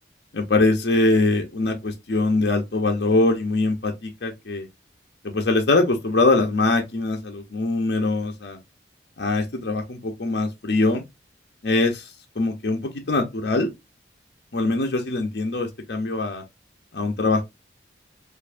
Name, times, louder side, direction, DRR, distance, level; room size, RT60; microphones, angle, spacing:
voice 1, 0.3-4.7 5.2-8.6 9.2-11.0 11.6-12.1 12.4-13.7 14.5-16.4 16.9-17.4, left 2 dB, 60° left, 0.7 m, -22 dB
4.5 x 2.6 x 2.5 m
head